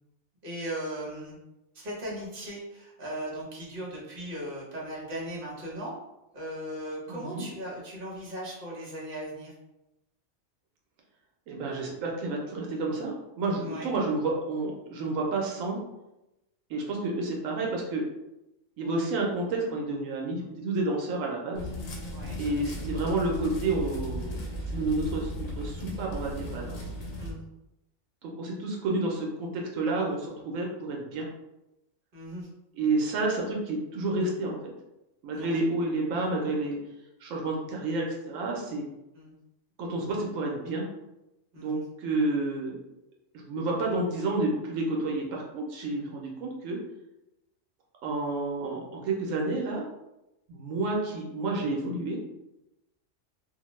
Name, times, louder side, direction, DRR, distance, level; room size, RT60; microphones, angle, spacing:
voice 1, 0.4-1.4 1.7-6.0 6.3-9.5 13.6-13.9 22.1-22.4 27.2-27.4 32.1-32.5 35.3-35.5 39.1-39.3 41.5-41.8, right 1 dB, 50° right, -4 dB, 1.0 m, -38 dB
voice 2, 7.1-7.4 11.5-15.8 16.7-18.0 18.8-21.7 22.4-24.4 24.7-26.8 28.2-31.3 32.8-34.7 35.2-36.8 37.2-38.8 39.8-40.9 41.6-42.8 43.3-46.8 48.0-49.9 50.5-52.2, right 2 dB, 85° right, -1 dB, 1.0 m, -30 dB
sound 1, 21.5-27.3, equal, 75° left, 0.9 m, -36 dB
2.5 x 2.1 x 3.0 m, 0.93 s
omnidirectional pair, 1.3 m